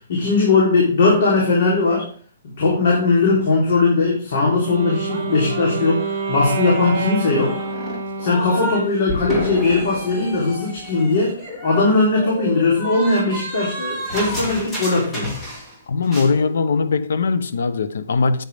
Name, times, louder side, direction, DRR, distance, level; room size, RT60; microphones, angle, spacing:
voice 1, 0.1-2.1 2.6-7.6 8.2-15.3, left 3 dB, 50° left, 3.6 m, -19 dB
Wind instrument woodwind instrument, 4.4-9.0, right 3 dB, 45° right, 2.5 m, -27 dB
sound 1, 5.1-8.8 9.1-15.8 16.0-16.3, equal, 10° left, 2.6 m, -31 dB
voice 2, 15.9-18.4, left 4 dB, 80° left, 1.0 m, -20 dB
9.3 x 9.0 x 3.6 m
hypercardioid pair, 170°, 0 cm